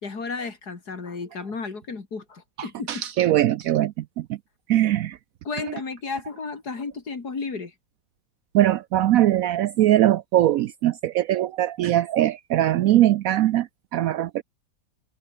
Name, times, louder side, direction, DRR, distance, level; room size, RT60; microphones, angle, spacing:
voice 1, 0.0-3.0 5.4-7.7, left 4 dB, 55° left, 3.4 m, -33 dB
voice 2, 2.6-4.4 4.7-5.2 5.6-5.7 8.5-14.4, right 13 dB, 90° right, 0.7 m, -21 dB
omnidirectional pair, 2.1 m